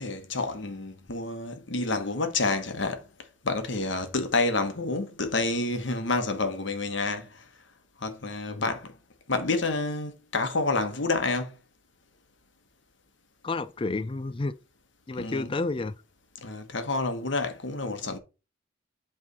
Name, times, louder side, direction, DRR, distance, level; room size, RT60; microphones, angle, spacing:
voice 1, 0.0-3.1 3.4-7.5 8.0-9.0 9.3-11.5 15.2-15.5 16.4-18.2, left 3 dB, 75° left, 1.3 m, -29 dB
voice 2, 13.4-14.6 15.1-15.9, left 3 dB, 25° left, 0.4 m, -30 dB
8.3 x 3.5 x 5.3 m
head